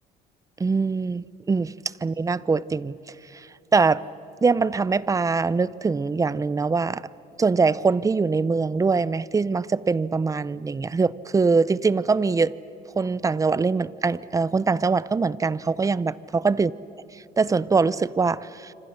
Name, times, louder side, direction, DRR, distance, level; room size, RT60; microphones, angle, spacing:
voice 1, 0.6-1.7 2.0-3.0 3.7-4.0 4.4-7.0 7.4-12.5 13.0-16.7 17.4-18.7, right 4 dB, 20° right, 19 dB, 0.6 m, -23 dB
26.5 x 26.5 x 6.5 m, 2.9 s
cardioid pair, 110°, 17 cm